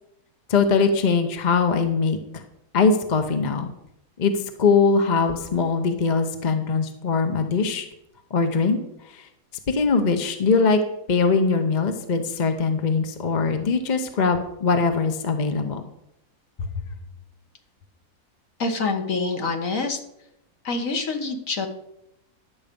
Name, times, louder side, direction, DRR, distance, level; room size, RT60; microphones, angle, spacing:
voice 1, 0.5-2.4 2.7-3.7 4.2-7.9 8.3-8.8 9.1-9.3 9.7-10.8 11.1-15.8 16.6-16.7, left 4 dB, 35° left, 6 dB, 0.8 m, -21 dB
voice 2, 18.6-20.0 20.6-21.7, left 3 dB, 60° left, 4 dB, 1.6 m, -26 dB
11.0 x 7.2 x 5.2 m, 0.83 s
omnidirectional pair, 1.6 m